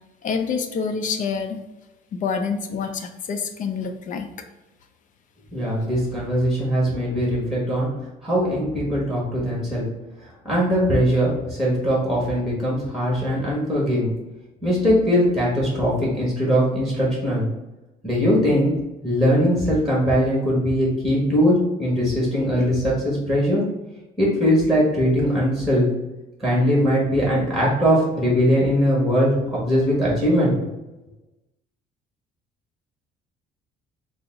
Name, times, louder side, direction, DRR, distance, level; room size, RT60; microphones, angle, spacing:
voice 1, 0.2-1.6 2.1-4.3, left 5 dB, 50° left, 6 dB, 0.5 m, -27 dB
voice 2, 5.5-7.9 8.2-9.8 10.4-14.1 14.6-17.5 18.0-18.7 19.0-23.6 24.2-25.8 26.4-30.5, equal, ahead, -5 dB, 1.4 m, -20 dB
3.8 x 2.0 x 3.5 m, 1.0 s
cardioid pair, 110°, 17 cm